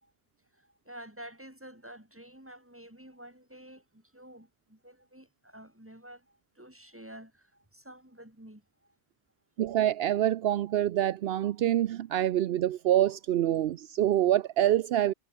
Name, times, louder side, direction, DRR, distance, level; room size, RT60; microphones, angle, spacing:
voice 1, 0.5-8.9, right 1 dB, 10° right, 3.7 m, -50 dB
voice 2, 9.6-15.1, right 12 dB, 75° right, 0.8 m, -26 dB
omnidirectional pair, 1.0 m